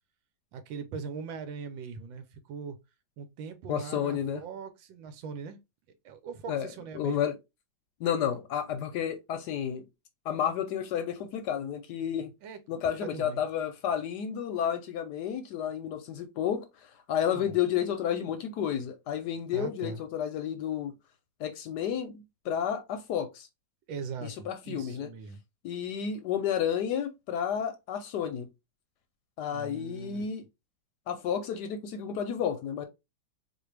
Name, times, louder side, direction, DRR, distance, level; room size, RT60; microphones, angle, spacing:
voice 1, 0.5-2.8 3.2-5.6 6.0-7.3 12.4-13.4 17.3-17.6 19.5-20.0 23.9-25.4 29.5-30.2, right 5 dB, 80° right, 1.5 m, -41 dB
voice 2, 3.7-4.4 6.5-6.7 6.9-7.3 8.0-9.8 10.3-12.3 12.7-16.6 17.1-20.9 21.4-23.5 24.2-25.1 25.6-28.5 29.4-30.4 31.1-32.9, left 9 dB, 75° left, 1.0 m, -31 dB
4.3 x 2.5 x 3.1 m
omnidirectional pair, 2.1 m